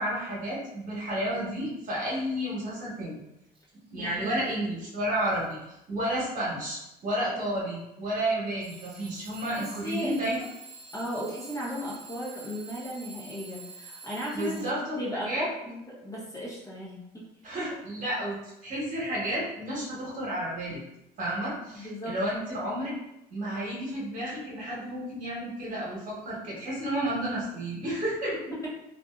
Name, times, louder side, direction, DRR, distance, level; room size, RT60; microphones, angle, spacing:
voice 1, 0.0-3.2 3.9-10.4 14.3-15.5 17.4-20.8 21.2-22.9 23.3-28.4, right 1 dB, 50° right, -6 dB, 1.2 m, -31 dB
Alarm / Clock, 3.6-3.7 4.2-4.7 5.2-5.6 6.5-6.6 8.6-15.0, right 3 dB, 30° right, 0.7 m, -47 dB
voice 2, 4.0-4.4 9.6-10.1 10.9-14.6 14.9-17.3 21.7-22.2, equal, 20° left, -6 dB, 0.8 m, -35 dB
2.7 x 2.4 x 2.4 m, 0.87 s
cardioid pair, 110°, 17 cm